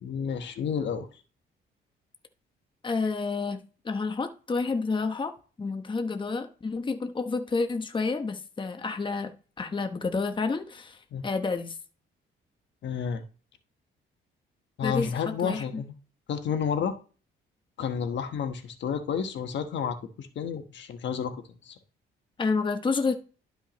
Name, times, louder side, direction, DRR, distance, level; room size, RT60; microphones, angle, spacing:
voice 1, 0.0-1.1 11.1-11.2 12.8-13.2 14.8-15.9 16.3-17.0 17.8-21.4 21.6-21.7, left 7 dB, 65° left, 1.2 m, -30 dB
voice 2, 2.8-5.3 5.6-11.8 14.8-15.8 22.4-23.2, left 4 dB, 25° left, 1.0 m, -30 dB
11.5 x 5.6 x 3.0 m
cardioid pair, 90°, 20 cm